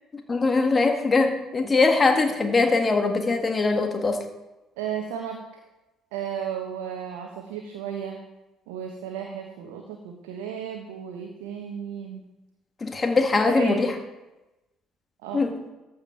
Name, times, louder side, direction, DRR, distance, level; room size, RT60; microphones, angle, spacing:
voice 1, 0.3-4.3 12.8-13.9 15.3-15.6, left 3 dB, 30° left, 5 dB, 1.7 m, -22 dB
voice 2, 4.8-5.4 6.1-8.2 8.7-12.2 13.5-13.9 15.2-15.4, right 8 dB, 70° right, 3 dB, 1.0 m, -34 dB
14.0 x 5.2 x 4.5 m, 1.0 s
figure-of-eight pair, 50°, 0 cm